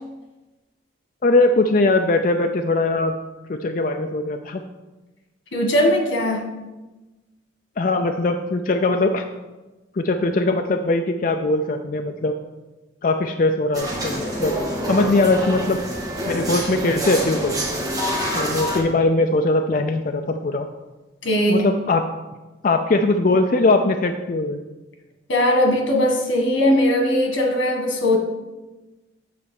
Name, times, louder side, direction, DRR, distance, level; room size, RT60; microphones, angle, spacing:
voice 1, 1.2-3.1 3.5-4.6 7.8-9.2 9.9-12.3 13.0-14.5 14.9-15.8 16.3-17.6 18.3-20.7 21.5-22.0 22.6-24.6, left 2 dB, 45° left, 5 dB, 0.4 m, -20 dB
voice 2, 5.5-6.5 21.2-21.6 25.3-28.2, left 1 dB, 90° left, 2 dB, 1.8 m, -19 dB
sound 1, 13.7-18.8, equal, 20° right, 1.7 m, -26 dB
8.5 x 4.3 x 7.0 m, 1.1 s
head